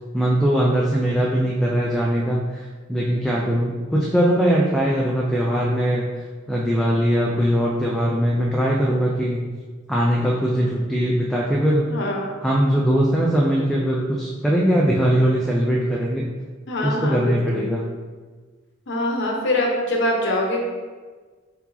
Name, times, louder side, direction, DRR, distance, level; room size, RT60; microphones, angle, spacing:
voice 1, 0.1-6.1 6.5-9.5 9.9-11.8 12.4-16.2 16.8-17.8, equal, ahead, -4 dB, 0.3 m, -21 dB
voice 2, 11.9-12.3 14.9-15.1 16.7-17.7 18.9-20.6, left 1 dB, 60° left, 0 dB, 0.8 m, -24 dB
4.5 x 2.8 x 4.0 m, 1.4 s
head